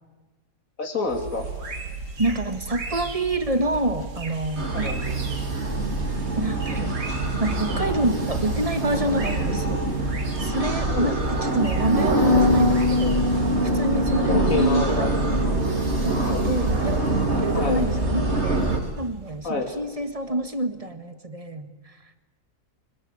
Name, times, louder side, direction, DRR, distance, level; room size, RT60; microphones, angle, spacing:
voice 1, 0.8-1.5 4.7-5.0 10.9-11.3 14.3-15.1 16.3-16.4 17.5-17.8 19.4-19.7, left 4 dB, 55° left, 3 dB, 3.4 m, -28 dB
sound 1, 1.1-20.5, right 3 dB, 90° right, 3.1 m, -37 dB
voice 2, 2.2-4.9 6.4-7.0 7.4-9.9 10.4-13.3 13.6-15.2 16.0-18.7 19.0-21.9, right 1 dB, 20° right, 9 dB, 1.6 m, -27 dB
sound 2, 4.5-18.8, right 2 dB, 45° right, 3.3 m, -25 dB
Bass guitar, 12.2-18.5, left 3 dB, 25° left, 2.7 m, -27 dB
25.0 x 21.0 x 8.8 m, 1.2 s
omnidirectional pair, 1.7 m